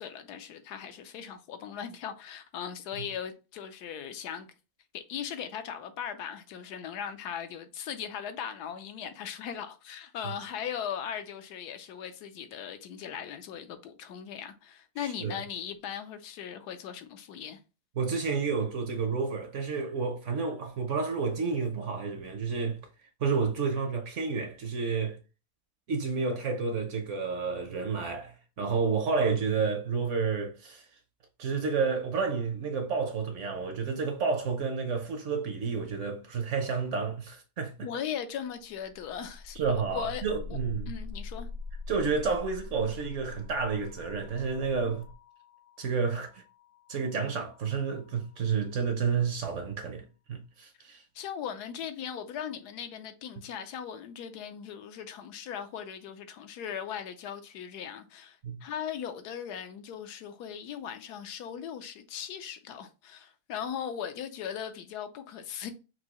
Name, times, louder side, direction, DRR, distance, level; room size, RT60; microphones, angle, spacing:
voice 1, 0.0-4.5 4.9-17.6 37.8-40.2 40.5-40.6 40.9-41.5 51.1-65.7, left 8 dB, 85° left, 1.2 m, -38 dB
voice 2, 18.0-22.8 23.2-25.2 25.9-30.9 31.4-37.9 39.6-40.9 41.9-45.1 45.8-46.4 46.9-51.0 58.4-58.6, right 5 dB, 60° right, 0.9 m, -30 dB
sound 1, 38.6-48.5, left 4 dB, 60° left, 0.9 m, -44 dB
5.9 x 2.7 x 2.9 m
omnidirectional pair, 1.7 m